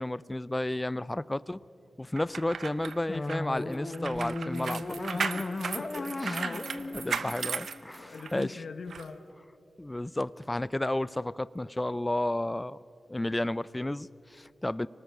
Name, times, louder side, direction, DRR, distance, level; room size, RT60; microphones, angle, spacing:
voice 1, 0.0-1.6 2.0-5.0 6.2-6.4 6.9-8.6 9.8-12.8 13.1-14.9, left 1 dB, 20° left, 19 dB, 0.5 m, -32 dB
sound 1, 2.2-8.4 8.9-9.0, right 6 dB, 85° right, 0.7 m, -36 dB
sound 2, 3.1-8.2, left 2 dB, 40° left, 1.5 m, -36 dB
voice 2, 5.1-6.8 7.2-7.4 8.0-9.3, left 4 dB, 80° left, 7 dB, 1.0 m, -43 dB
25.0 x 18.5 x 6.6 m, 2.6 s
cardioid pair, 50°, 0 cm